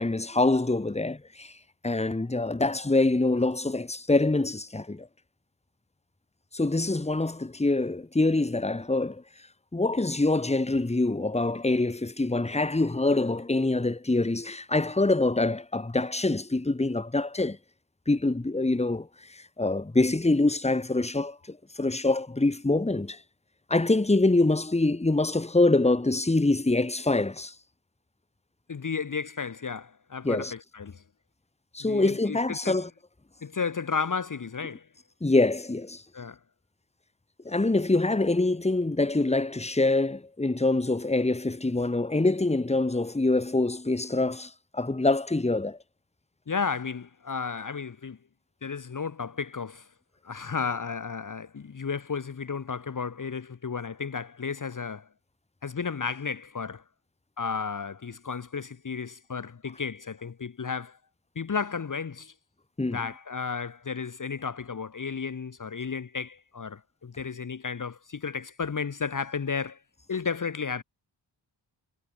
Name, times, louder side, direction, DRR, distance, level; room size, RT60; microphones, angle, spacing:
voice 1, 0.0-1.5 1.8-5.1 6.5-9.2 9.7-17.6 18.1-23.2 23.7-27.5 30.2-30.5 31.7-32.9 35.2-36.0 37.5-45.8 62.8-63.0, left 2 dB, 15° left, 1.8 m, -25 dB
voice 2, 28.7-31.0 31.8-32.8 33.4-34.9 36.1-36.4 46.5-48.2 48.6-49.9 50.2-55.1 55.6-56.8 57.4-61.0 61.3-62.3 62.9-69.8 70.1-70.8, left 5 dB, 45° left, 1.5 m, -33 dB
cardioid pair, 70°, 45 cm